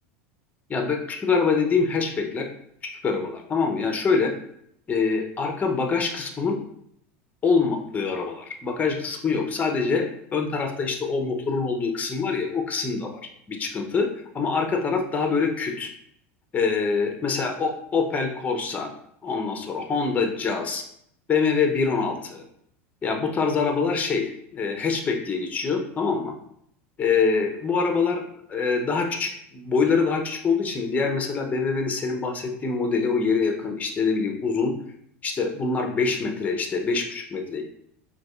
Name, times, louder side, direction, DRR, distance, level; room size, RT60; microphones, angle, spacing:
voice 1, 0.7-2.5 2.8-4.3 4.9-6.6 7.4-13.2 13.5-14.1 14.3-15.9 16.5-18.9 19.2-20.8 21.3-22.4 23.0-24.3 24.5-26.3 27.0-28.2 28.5-34.7 35.2-37.7, left 5 dB, 20° left, 4 dB, 0.5 m, -25 dB
4.1 x 2.5 x 2.3 m, 0.71 s
hypercardioid pair, 105°, 7 cm